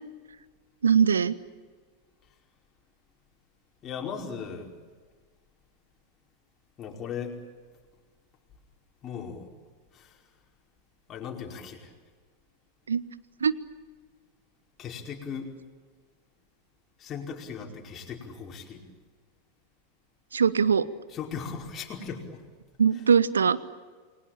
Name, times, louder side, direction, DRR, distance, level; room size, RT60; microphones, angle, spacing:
voice 1, 0.8-1.4 12.9-13.0 13.4-13.5 20.3-20.9 22.8-23.6, right 6 dB, 70° right, 17 dB, 1.1 m, -21 dB
voice 2, 3.8-4.7 6.8-7.4 9.0-9.5 9.9-10.2 11.1-11.9 14.8-15.5 17.0-18.8 21.1-22.4 22.9-23.1, left 6 dB, 25° left, 1 dB, 5.0 m, -38 dB
29.0 x 21.5 x 8.8 m, 1.5 s
figure-of-eight pair, 90°, 0 cm